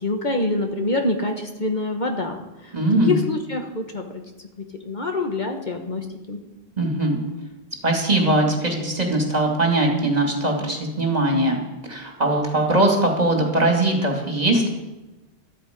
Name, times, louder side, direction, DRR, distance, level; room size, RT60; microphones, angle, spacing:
voice 1, 0.0-2.4 2.6-2.7 3.1-4.1 4.8-6.4, left 2 dB, 45° left, 3 dB, 1.4 m, -25 dB
voice 2, 2.7-3.1 6.8-7.2 7.8-11.6 11.9-14.7, right 1 dB, 40° right, 1 dB, 2.6 m, -20 dB
13.5 x 13.0 x 5.2 m, 1.1 s
omnidirectional pair, 1.1 m